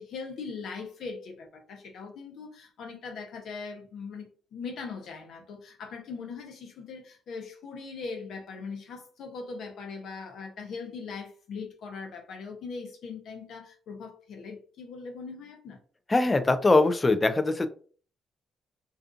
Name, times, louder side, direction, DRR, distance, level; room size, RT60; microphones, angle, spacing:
voice 1, 0.0-15.8, left 4 dB, 70° left, 0.7 m, -40 dB
voice 2, 16.1-17.7, left 2 dB, 20° left, 0.3 m, -22 dB
2.4 x 2.4 x 2.4 m
cardioid pair, 90°, 0 cm